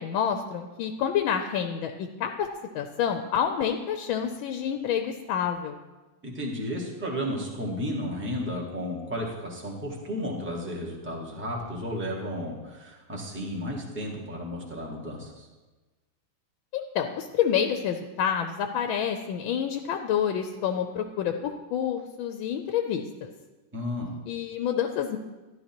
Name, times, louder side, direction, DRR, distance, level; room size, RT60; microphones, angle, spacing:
voice 1, 0.0-2.5 2.7-5.8 16.7-23.3 24.3-25.2, left 8 dB, 80° left, 6 dB, 1.4 m, -28 dB
voice 2, 6.2-15.5 23.7-24.1, equal, 5° right, -3 dB, 1.4 m, -33 dB
12.5 x 11.5 x 2.9 m, 1.2 s
omnidirectional pair, 2.3 m